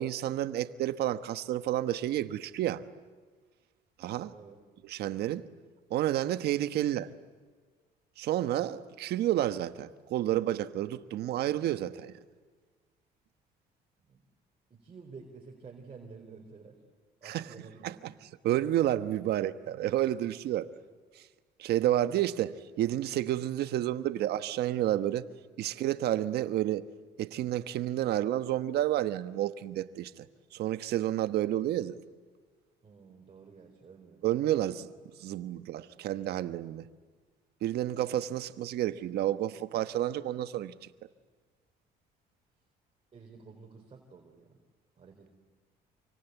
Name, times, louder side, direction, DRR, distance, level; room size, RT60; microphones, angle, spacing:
voice 1, 0.0-2.8 4.0-4.3 4.8-5.5 5.9-7.1 8.2-12.1 17.2-17.5 17.8-17.9 18.4-20.7 21.6-25.3 25.6-26.8 27.2-30.3 30.5-32.0 34.2-34.9 35.2-36.9 37.6-40.7, right 13 dB, 75° right, 1.3 m, -30 dB
voice 2, 14.7-16.8 17.2-18.0 32.8-34.2 43.1-44.6 45.0-45.3, right 5 dB, 35° right, 4.2 m, -51 dB
28.0 x 24.5 x 8.2 m
cardioid pair, 110°, 17 cm